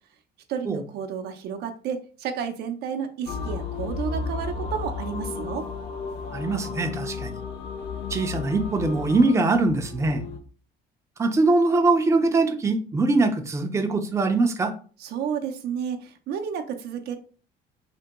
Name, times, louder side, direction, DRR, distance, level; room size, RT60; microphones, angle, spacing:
voice 1, 0.5-5.7 15.0-17.2, right 7 dB, 75° right, 5 dB, 0.5 m, -31 dB
sound 1, 3.3-10.4, left 5 dB, 80° left, 0.6 m, -33 dB
voice 2, 6.3-7.3 8.1-10.2 11.2-14.7, right 3 dB, 15° right, 5 dB, 0.4 m, -22 dB
3.3 x 2.1 x 2.9 m, 0.39 s
cardioid pair, 110°, 17 cm